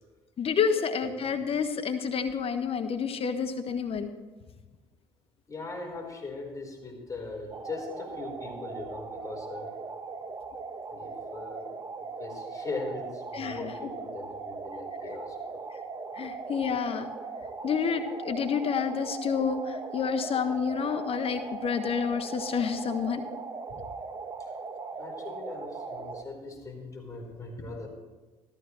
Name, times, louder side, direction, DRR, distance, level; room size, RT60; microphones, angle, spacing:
voice 1, 0.4-4.1 13.3-13.7 16.2-17.1 17.6-23.2, left 6 dB, 45° left, 8 dB, 1.2 m, -29 dB
voice 2, 5.5-9.7 10.9-11.7 12.2-15.6 24.3-24.5 25.0-27.9, left 3 dB, 25° left, -1 dB, 4.7 m, -40 dB
sound 1, 7.5-26.2, right 4 dB, 30° right, 1.1 m, -39 dB
14.0 x 13.5 x 3.3 m, 1.2 s
hypercardioid pair, 55°, 14 cm